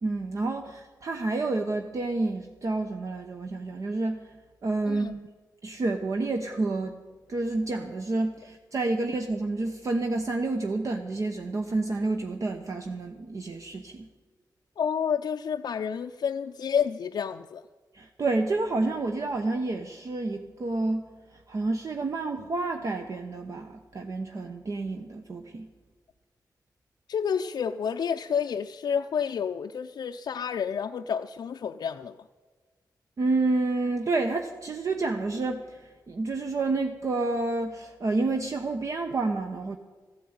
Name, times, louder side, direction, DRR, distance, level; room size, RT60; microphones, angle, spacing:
voice 1, 0.0-4.3 4.6-5.2 5.6-7.0 7.3-14.1 17.9-25.7 33.2-39.8, right 3 dB, 50° right, 5 dB, 0.9 m, -29 dB
voice 2, 14.8-17.6 27.1-32.2, left 7 dB, 70° left, 4 dB, 0.5 m, -29 dB
14.5 x 9.2 x 8.7 m, 1.4 s
wide cardioid pair, 120°, 7 cm